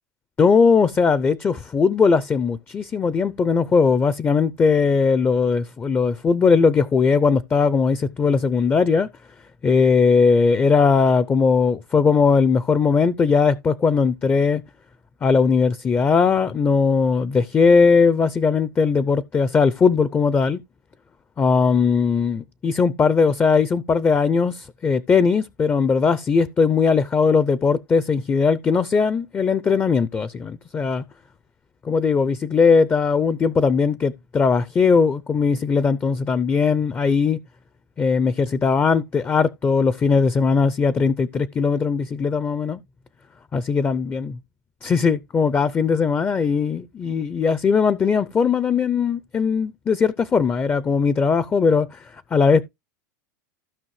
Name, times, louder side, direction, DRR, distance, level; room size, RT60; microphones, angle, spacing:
voice 1, 0.4-9.1 9.6-14.6 15.2-20.6 21.4-31.0 31.8-37.4 38.0-42.8 43.5-44.4 44.8-52.7, left 5 dB, 20° left, 0.5 m, -19 dB
15.0 x 5.4 x 3.2 m
hypercardioid pair, 115°, 10 cm